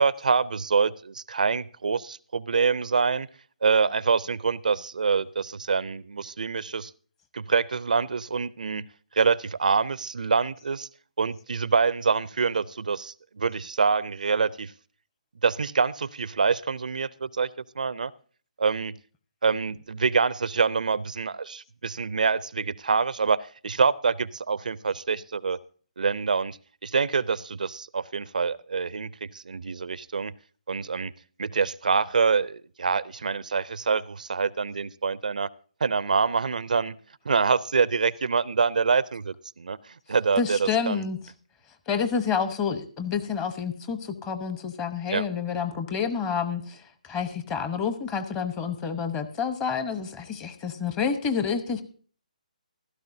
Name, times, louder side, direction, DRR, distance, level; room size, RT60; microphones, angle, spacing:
voice 1, 0.0-3.3 3.6-6.9 7.3-8.8 9.1-10.9 11.2-14.7 15.4-17.5 17.8-18.1 18.6-18.9 19.4-25.6 26.0-30.3 30.7-31.1 31.4-35.5 35.8-37.0 37.3-41.0 45.1-45.2, right 5 dB, 70° right, 20 dB, 0.4 m, -25 dB
voice 2, 40.4-41.2 41.9-51.8, left 6 dB, 15° left, 9 dB, 0.9 m, -29 dB
15.5 x 13.0 x 2.6 m, 0.41 s
figure-of-eight pair, 145°, 4 cm